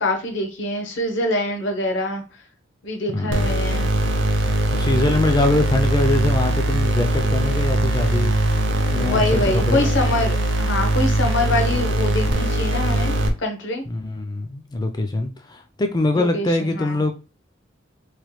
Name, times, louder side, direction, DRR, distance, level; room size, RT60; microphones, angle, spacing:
voice 1, 0.0-2.2 2.8-3.9 8.9-13.8 16.1-17.0, left 1 dB, 65° left, 0.8 m, -25 dB
voice 2, 3.1-3.5 4.7-8.3 8.9-10.1 13.9-17.1, left 2 dB, 20° left, 0.4 m, -23 dB
sound 1, 3.3-13.3, right 1 dB, 60° right, 0.6 m, -21 dB
3.1 x 2.1 x 3.1 m
head